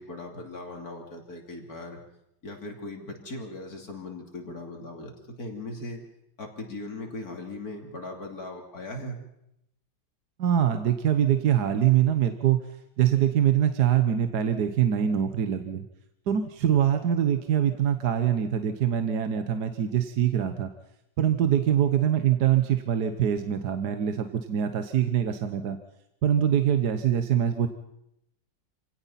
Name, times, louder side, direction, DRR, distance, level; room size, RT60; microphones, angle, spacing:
voice 1, 0.0-2.0 2.4-5.1 5.4-6.0 6.4-9.2, left 2 dB, 55° left, 2 dB, 3.4 m, -38 dB
voice 2, 10.4-12.6 13.0-15.9 16.3-20.7 21.2-25.8 26.2-27.7, right 10 dB, 65° right, 8 dB, 1.5 m, -24 dB
27.0 x 17.5 x 5.8 m, 0.80 s
omnidirectional pair, 1.9 m